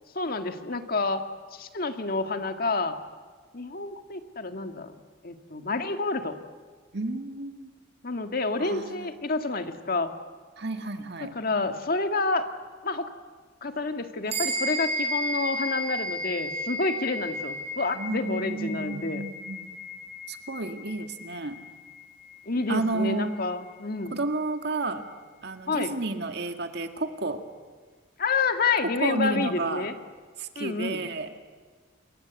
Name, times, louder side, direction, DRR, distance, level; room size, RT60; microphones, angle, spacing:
voice 1, 0.1-1.2 1.5-3.0 3.5-4.9 5.2-6.4 8.0-10.1 11.4-12.4 12.8-13.1 13.6-19.2 22.5-24.2 25.7-25.9 28.2-29.9 30.6-31.0, left 3 dB, 50° left, 7 dB, 1.9 m, -29 dB
voice 2, 6.9-7.7 8.6-9.1 10.6-11.3 17.9-19.8 20.3-21.6 22.7-23.4 24.1-25.0 25.4-27.4 29.0-29.9 30.4-31.3, right 2 dB, 60° right, 6 dB, 2.1 m, -31 dB
sound 1, 14.3-24.0, equal, 35° right, 6.9 m, -34 dB
28.5 x 22.5 x 8.3 m, 1.5 s
head